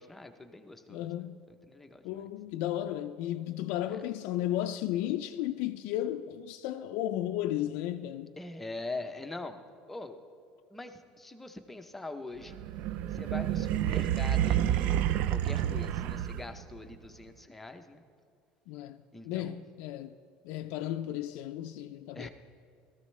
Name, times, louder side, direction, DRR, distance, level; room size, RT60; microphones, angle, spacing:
voice 1, 0.0-1.2 1.7-2.2 3.9-4.0 8.4-9.6 9.9-10.2 10.7-12.6 13.1-15.0 15.3-18.0 19.1-19.6 22.1-22.3, left 2 dB, 5° left, 0.6 m, -43 dB
voice 2, 0.9-1.4 2.0-8.3 18.7-19.0 19.2-20.1 20.4-22.3, left 12 dB, 80° left, 0.3 m, -34 dB
sound 1, 12.5-16.7, right 11 dB, 60° right, 0.3 m, -29 dB
16.5 x 13.5 x 3.2 m
cardioid pair, 165°, 3 cm